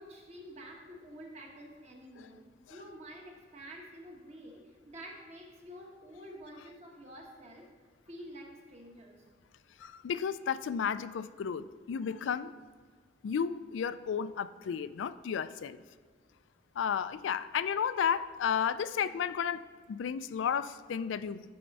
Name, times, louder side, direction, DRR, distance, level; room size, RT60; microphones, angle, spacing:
voice 1, 0.0-9.2, equal, 35° right, 1 dB, 1.2 m, -49 dB
voice 2, 9.8-12.5 13.2-15.8 16.8-21.4, left 7 dB, 85° left, 14 dB, 0.3 m, -33 dB
10.5 x 4.4 x 5.3 m, 1.5 s
head